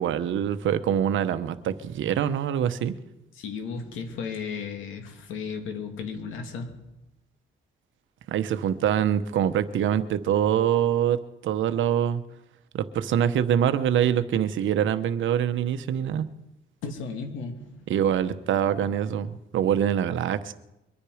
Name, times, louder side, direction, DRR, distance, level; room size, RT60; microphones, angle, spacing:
voice 1, 0.0-2.9 8.3-12.2 12.7-16.3 17.9-20.5, right 9 dB, 75° right, 11 dB, 1.0 m, -24 dB
voice 2, 3.4-6.8 16.8-17.7, left 5 dB, 85° left, 5 dB, 2.6 m, -34 dB
23.5 x 10.0 x 5.0 m, 0.92 s
cardioid pair, 90°, 20 cm